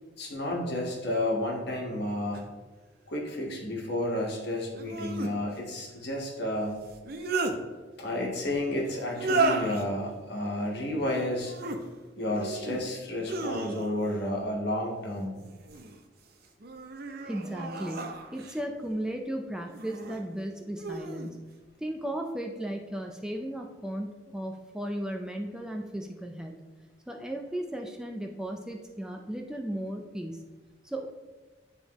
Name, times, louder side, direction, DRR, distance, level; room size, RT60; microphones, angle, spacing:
voice 1, 0.2-2.4 3.1-6.8 8.0-11.5 12.2-15.4, left 1 dB, 65° left, -1 dB, 1.4 m, -31 dB
sound 1, 2.3-2.4 4.7-5.3 6.9-7.6 9.1-9.8 11.3-11.8 12.3-12.8 13.2-14.1 15.4-16.0 16.6-18.6 19.7-20.2 20.8-21.3, right 3 dB, 60° right, 0.6 m, -33 dB
voice 2, 17.3-21.5 21.8-26.6 27.1-30.5 30.8-31.1, right 1 dB, 5° right, 2 dB, 0.4 m, -35 dB
9.8 x 3.5 x 3.0 m, 1.3 s
head